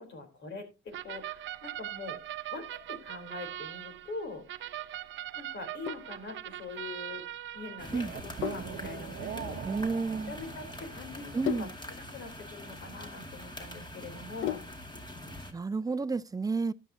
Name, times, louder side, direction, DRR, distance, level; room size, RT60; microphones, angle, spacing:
voice 1, 0.0-2.2 2.5-4.5 5.3-7.2 7.5-9.8 10.3-11.7 12.1-14.6, left 3 dB, 70° left, 3.8 m, -43 dB
sound 1, 0.9-11.3, right 12 dB, 70° right, 0.8 m, -41 dB
Sink (filling or washing), 5.6-15.0, left 13 dB, 85° left, 0.6 m, -41 dB
sound 2, 7.8-15.5, left 1 dB, 20° left, 2.1 m, -44 dB
voice 2, 9.6-10.4 11.3-11.7 15.5-16.7, right 4 dB, 20° right, 0.6 m, -31 dB
13.5 x 10.0 x 2.8 m
cardioid pair, 90°, 20 cm